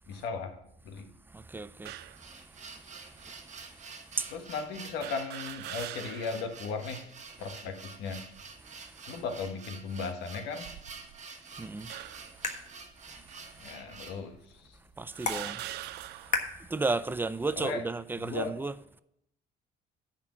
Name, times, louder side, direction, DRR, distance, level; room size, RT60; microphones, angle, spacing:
voice 1, 0.1-0.6 0.8-1.1 4.3-7.1 7.4-8.3 9.1-10.7 13.6-14.8 17.5-17.9 18.2-18.5, left 5 dB, 85° left, 1.4 m, -36 dB
voice 2, 1.3-1.9 4.2-4.3 11.6-11.9 15.0-15.6 16.7-18.7, right 3 dB, 10° right, 0.4 m, -32 dB
sound 1, 1.8-2.2 3.1-3.2 5.0-6.5 6.9-7.0 8.1-8.6 9.3-9.5 10.5-11.3 11.9-12.4 13.3-13.4 14.3-14.4 15.1-16.5, right 14 dB, 80° right, 0.5 m, -43 dB
sound 2, 2.1-14.2, right 4 dB, 45° right, 1.3 m, -48 dB
sound 3, 11.5-17.6, left 4 dB, 45° left, 1.4 m, -40 dB
10.0 x 4.4 x 7.2 m
cardioid pair, 110°, 17 cm